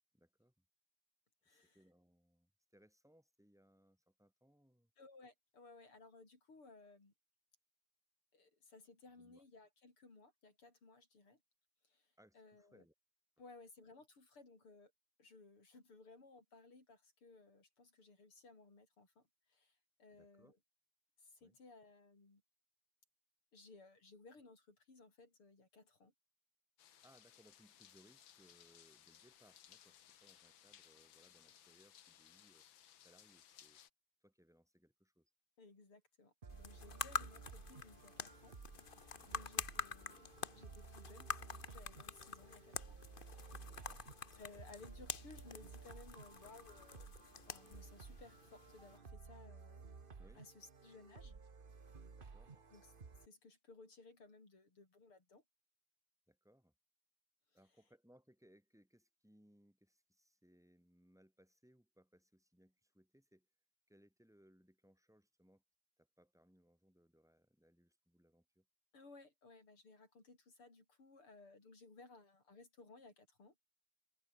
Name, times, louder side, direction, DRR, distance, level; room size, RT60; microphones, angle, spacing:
voice 1, 0.1-0.6 1.5-4.9 9.2-9.4 12.2-12.9 20.1-20.5 21.4-21.6 27.0-32.7 33.0-33.8 34.2-35.3 36.8-37.1 39.1-39.4 43.6-44.0 50.2-50.5 52.2-52.6 56.3-56.7 57.5-63.5 63.9-65.6 66.0-68.7, equal, ahead, 3.9 m, -69 dB
voice 2, 1.4-1.8 5.0-7.1 8.3-11.4 11.8-12.8 13.4-14.9 15.2-20.6 21.2-22.4 23.5-26.1 35.6-40.3 40.5-43.0 43.3-43.7 44.4-49.9 50.4-51.4 52.7-52.9 53.2-55.4 57.5-57.6 68.9-73.5, left 3 dB, 90° left, 6.9 m, -60 dB
sound 1, 26.8-33.9, left 10 dB, 65° left, 1.9 m, -63 dB
sound 2, 36.4-53.3, right 4 dB, 30° right, 1.3 m, -56 dB
sound 3, 36.5-49.0, left 6 dB, 35° left, 0.8 m, -47 dB
open air
omnidirectional pair, 2.3 m